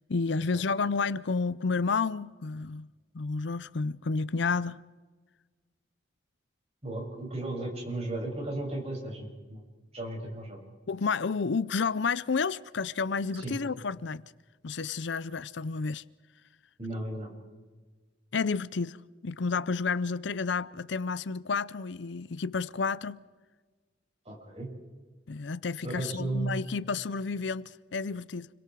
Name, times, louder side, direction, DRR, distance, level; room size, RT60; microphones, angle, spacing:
voice 1, 0.1-2.9 3.1-4.8 10.9-14.2 14.6-16.0 18.3-19.0 19.2-23.2 25.3-28.5, left 4 dB, 70° left, 0.6 m, -30 dB
voice 2, 6.8-9.6 9.9-10.6 13.3-13.5 16.8-17.3 24.2-24.7 25.8-26.5, right 2 dB, 35° right, 6.7 m, -35 dB
29.5 x 23.5 x 4.7 m
head